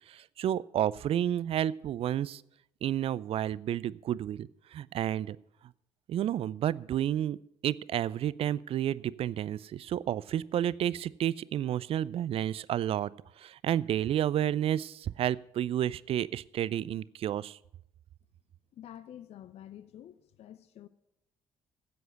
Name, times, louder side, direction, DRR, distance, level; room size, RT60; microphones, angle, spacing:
voice 1, 0.1-2.4 2.8-5.4 6.1-7.4 7.6-13.1 13.4-17.6, right 11 dB, 50° right, 0.4 m, -31 dB
voice 2, 18.7-20.9, left 11 dB, 55° left, 0.6 m, -48 dB
10.5 x 7.7 x 8.0 m
hypercardioid pair, 45°, 12 cm